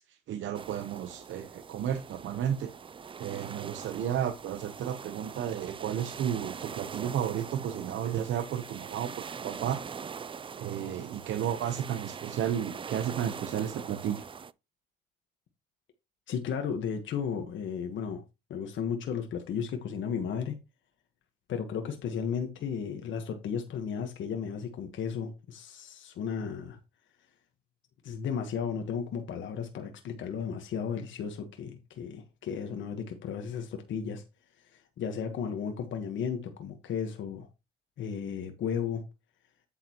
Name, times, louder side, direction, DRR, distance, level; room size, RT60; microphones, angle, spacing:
voice 1, 0.1-2.7 3.2-9.8 10.6-14.2, right 9 dB, 75° right, 1.0 m, -33 dB
sound 1, 0.5-14.5, right 6 dB, 25° right, 0.4 m, -42 dB
voice 2, 16.3-18.2 18.5-20.6 21.5-26.8 28.0-34.2 34.7-37.5 38.0-39.0, left 7 dB, 75° left, 1.4 m, -34 dB
8.5 x 7.8 x 3.0 m
cardioid pair, 90°, 20 cm